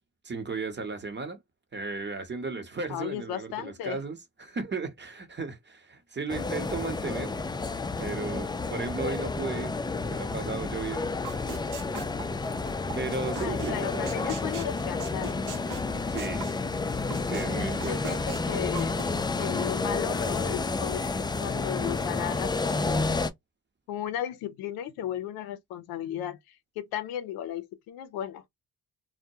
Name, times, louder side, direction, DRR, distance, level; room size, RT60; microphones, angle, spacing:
voice 1, 0.2-1.4 1.7-7.4 8.0-9.7 10.1-11.1 12.9-14.3 16.1-16.5 17.3-18.2, right 4 dB, 30° right, 0.9 m, -35 dB
voice 2, 2.9-4.0 13.4-15.7 17.9-19.0 19.4-23.2 23.9-28.4, left 10 dB, 90° left, 0.5 m, -35 dB
sound 1, 6.3-23.3, left 3 dB, 15° left, 0.3 m, -30 dB
sound 2, 11.2-13.0 13.3-13.7 14.1-17.5 17.8-19.0, right 7 dB, 60° right, 0.6 m, -40 dB
2.1 x 2.1 x 2.6 m
supercardioid pair, 60°, 35 cm